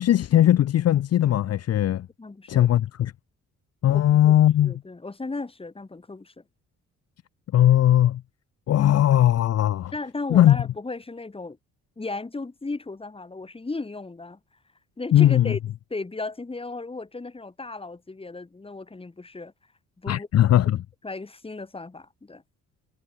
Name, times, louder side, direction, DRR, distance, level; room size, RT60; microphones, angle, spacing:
voice 1, 0.0-2.1 2.5-3.1 3.8-4.7 7.5-8.2 8.7-9.9 10.3-10.6 15.1-15.5 20.1-20.8, left 12 dB, 55° left, 0.7 m, -19 dB
voice 2, 2.2-2.7 3.9-4.3 4.6-6.4 9.9-11.6 12.0-14.4 15.0-15.6 15.9-19.5 20.0-20.3 21.0-22.4, left 3 dB, 20° left, 2.5 m, -35 dB
cardioid pair, 90°, 30 cm